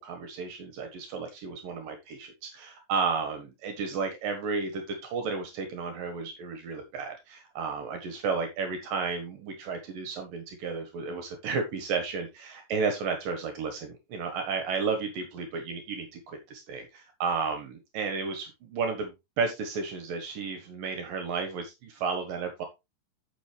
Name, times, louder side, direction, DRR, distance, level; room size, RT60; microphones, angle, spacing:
voice 1, 0.0-22.7, right 5 dB, 75° right, 5 dB, 3.1 m, -33 dB
11.5 x 6.4 x 3.4 m, 0.24 s
omnidirectional pair, 4.0 m